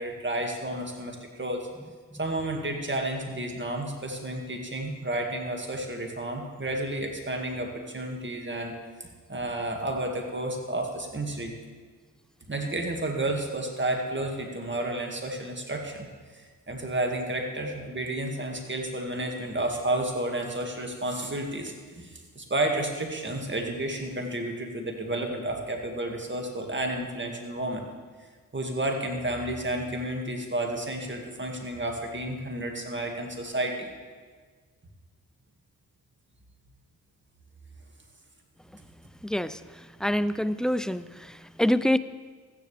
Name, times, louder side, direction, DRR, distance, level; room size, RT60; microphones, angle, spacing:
voice 1, 0.0-1.7 2.2-8.7 9.0-11.5 12.5-16.1 16.3-27.9 28.5-33.9, right 1 dB, 30° right, 2 dB, 2.1 m, -31 dB
voice 2, 39.2-42.0, left 1 dB, ahead, 14 dB, 0.3 m, -26 dB
14.5 x 10.0 x 3.4 m, 1.5 s
cardioid pair, 45°, 35 cm